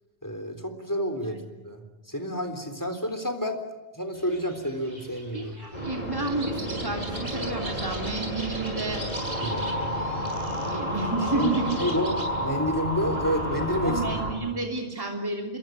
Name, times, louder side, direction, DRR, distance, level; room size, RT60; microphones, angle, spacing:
voice 1, 0.2-3.6 3.9-5.5 9.4-10.0 11.3-11.5 11.8-14.0 14.4-14.5, equal, 20° left, 7 dB, 3.7 m, -30 dB
sound 1, 4.1-12.3, right 1 dB, 40° right, 7.6 m, -41 dB
voice 2, 5.3-9.0 10.5-11.8 13.8-15.6, right 3 dB, 20° right, 1 dB, 3.3 m, -31 dB
sound 2, 5.7-14.3, equal, 35° left, 7.0 m, -31 dB
27.0 x 23.0 x 9.2 m, 1.1 s
omnidirectional pair, 1.0 m